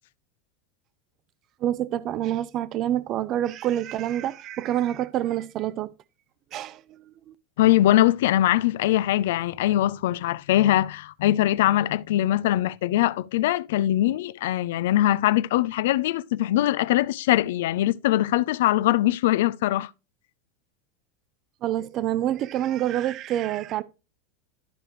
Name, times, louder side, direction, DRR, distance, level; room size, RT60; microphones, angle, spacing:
voice 1, 1.6-5.9 6.5-7.3 21.6-23.8, right 12 dB, 45° right, 0.5 m, -27 dB
voice 2, 7.6-19.9, left 14 dB, 80° left, 0.4 m, -22 dB
13.0 x 5.0 x 3.0 m
supercardioid pair, 125°, 0 cm